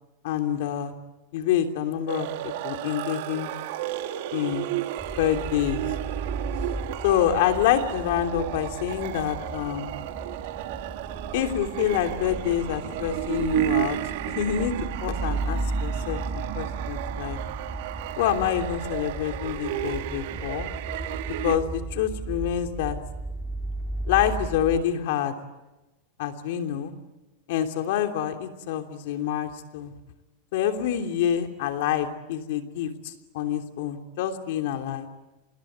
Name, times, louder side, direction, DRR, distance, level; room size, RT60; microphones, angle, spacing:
voice 1, 0.2-0.9 1.3-3.5 4.3-4.7 5.2-5.8 7.0-9.9 11.3-14.0 14.3-14.7 15.0-17.4 18.2-20.7 21.4-23.0 24.1-25.3 26.2-26.9 27.5-29.9 30.5-35.1, left 10 dB, 65° left, 5 dB, 3.1 m, -27 dB
sound 1, 2.1-21.6, right 14 dB, 65° right, 1.8 m, -33 dB
sound 2, 5.0-24.8, right 2 dB, 5° right, 2.7 m, -35 dB
26.0 x 21.5 x 9.4 m, 1.0 s
supercardioid pair, 140°, 0 cm